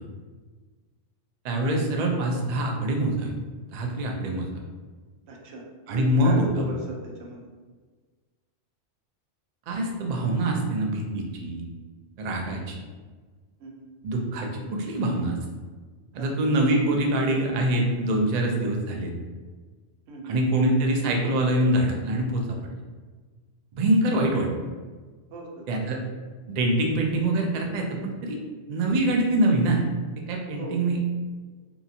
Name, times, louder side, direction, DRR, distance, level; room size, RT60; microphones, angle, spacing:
voice 1, 1.4-3.3 3.7-4.5 5.9-6.5 9.7-11.6 12.2-12.8 14.0-15.3 16.1-19.1 20.2-22.6 23.7-24.5 25.7-26.0 26.5-28.4 28.7-29.8 30.3-31.0, right 1 dB, 65° right, 1 dB, 0.4 m, -24 dB
voice 2, 5.3-7.4 12.3-12.4 13.6-13.9 16.2-16.5 20.1-20.4 25.3-25.7 30.6-30.8, right 1 dB, 85° right, 0 dB, 1.0 m, -38 dB
2.8 x 2.4 x 2.6 m, 1.4 s
omnidirectional pair, 1.2 m